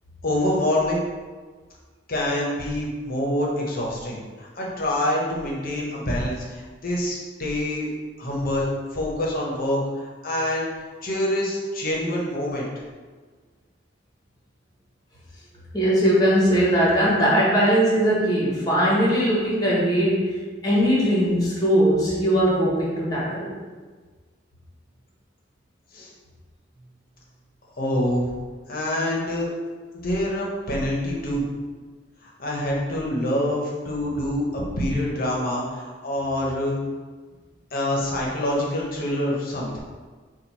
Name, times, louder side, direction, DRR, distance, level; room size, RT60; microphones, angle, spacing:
voice 1, 0.2-1.0 2.1-7.9 8.2-10.7 11.0-12.7 25.9-26.1 27.8-28.3 28.7-29.5 30.0-31.4 32.2-36.8 37.7-39.8, left 1 dB, 50° left, -3 dB, 1.0 m, -26 dB
voice 2, 15.7-20.4 20.6-23.5, equal, 20° left, -6 dB, 1.2 m, -20 dB
4.3 x 2.5 x 4.5 m, 1.4 s
head